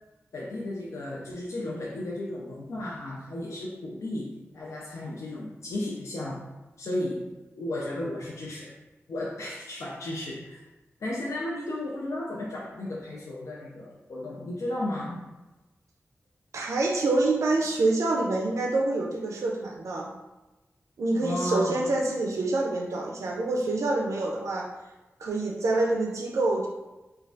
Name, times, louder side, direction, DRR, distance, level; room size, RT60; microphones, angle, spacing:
voice 1, 0.3-6.5 6.8-7.3 7.5-8.7 9.1-10.6 11.0-15.3 21.2-21.9, left 1 dB, 80° left, -4 dB, 0.4 m, -34 dB
voice 2, 16.5-20.1 21.0-24.7 25.2-26.7, right 2 dB, 90° right, -1 dB, 0.3 m, -26 dB
3.1 x 2.2 x 2.6 m, 1.1 s
wide cardioid pair, 125°, 5 cm